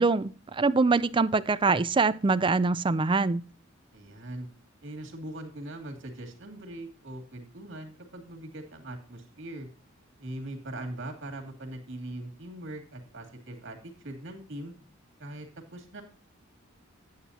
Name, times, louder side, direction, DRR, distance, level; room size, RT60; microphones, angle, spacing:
voice 1, 0.0-3.4, right 4 dB, 25° right, 0.4 m, -24 dB
voice 2, 3.9-4.5 4.8-9.7 10.2-14.7 15.2-16.0, right 1 dB, 60° right, 2.5 m, -41 dB
9.6 x 9.0 x 2.8 m
head